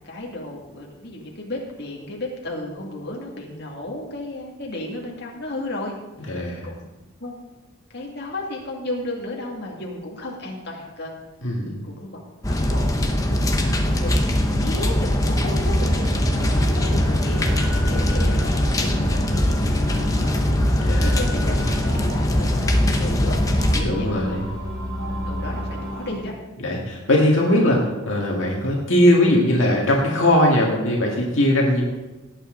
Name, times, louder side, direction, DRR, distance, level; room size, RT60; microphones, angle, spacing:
voice 1, 0.0-5.9 6.6-6.9 7.2-7.3 7.9-11.1 11.8-19.6 20.0-21.6 21.9-23.4 23.7-24.4 25.2-26.3, left 1 dB, 50° left, -2 dB, 2.3 m, -34 dB
voice 2, 6.3-6.7 11.4-11.7 18.9-19.2 20.8-21.1 23.8-24.5 26.6-31.8, left 1 dB, 65° left, -2 dB, 2.0 m, -20 dB
sound 1, 12.4-23.8, left 1 dB, 15° left, 0.9 m, -21 dB
sound 2, 15.1-26.2, equal, 65° right, 5.0 m, -31 dB
18.0 x 8.5 x 3.9 m, 1.1 s
head